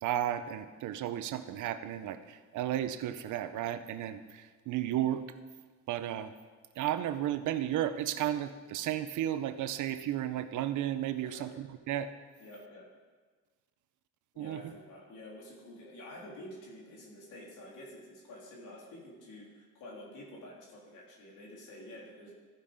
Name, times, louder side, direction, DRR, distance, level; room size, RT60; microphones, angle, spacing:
voice 1, 0.0-5.2 5.9-6.3 6.8-12.1 14.4-14.6, right 11 dB, 80° right, 11 dB, 0.7 m, -33 dB
voice 2, 12.4-12.9 14.3-22.3, left 1 dB, 85° left, -3 dB, 3.2 m, -49 dB
14.0 x 5.5 x 5.0 m, 1.4 s
cardioid pair, 90°, 30 cm